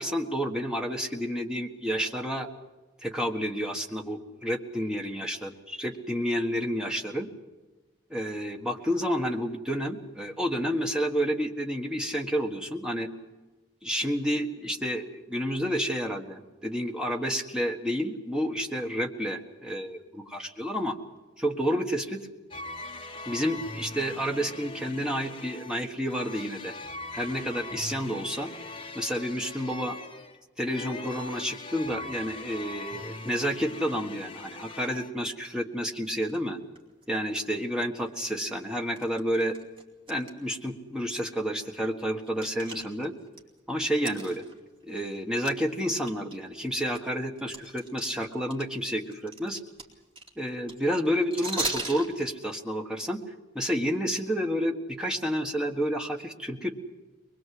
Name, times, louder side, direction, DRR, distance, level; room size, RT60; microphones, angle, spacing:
voice 1, 0.0-2.5 3.0-7.3 8.1-13.1 13.8-21.0 21.4-22.2 23.3-26.8 27.1-28.5 28.9-30.0 30.6-36.6 37.1-39.6 40.1-43.1 43.7-44.4 44.8-49.6 50.4-53.2 53.5-56.7, equal, 5° right, 2 dB, 1.5 m, -30 dB
sound 1, 22.5-35.1, left 2 dB, 25° left, 1.2 m, -41 dB
sound 2, 36.3-36.4 36.8-37.0 37.5-37.6 38.1-38.2 39.0-40.3 40.6-40.7 41.3-41.4 41.8-43.4 44.0-45.2 45.5-45.6 46.0-48.6 48.9-52.1, right 2 dB, 25° right, 2.7 m, -37 dB
23.0 x 21.5 x 7.8 m, 1.2 s
head